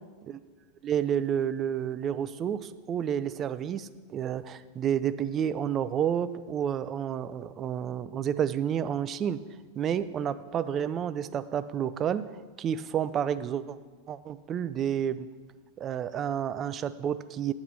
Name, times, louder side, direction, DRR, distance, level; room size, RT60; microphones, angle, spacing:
voice 1, 0.8-9.4 9.8-12.2 12.6-13.8 14.1-15.3 15.8-17.5, right 9 dB, 30° right, 14 dB, 0.3 m, -30 dB
7.5 x 4.8 x 5.5 m, 1.4 s
figure-of-eight pair, 90°, 0 cm